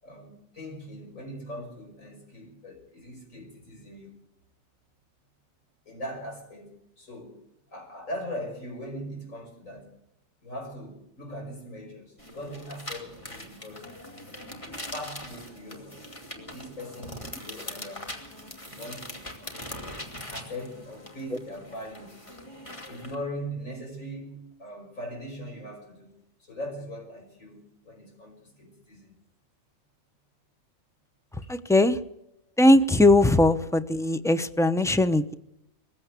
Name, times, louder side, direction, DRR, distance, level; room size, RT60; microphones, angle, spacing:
voice 1, 0.0-4.2 5.9-7.4 7.7-9.9 10.4-13.9 14.2-15.9 16.3-18.1 18.4-19.7 20.3-22.1 22.6-26.1 26.4-29.2 31.4-31.5, equal, 70° left, 6.1 m, -40 dB
sound 1, 12.2-23.1, left 1 dB, 25° left, 2.7 m, -42 dB
voice 2, 31.5-32.0 32.6-35.3, left 1 dB, 5° left, 0.5 m, -20 dB
21.0 x 15.5 x 8.3 m
omnidirectional pair, 1.4 m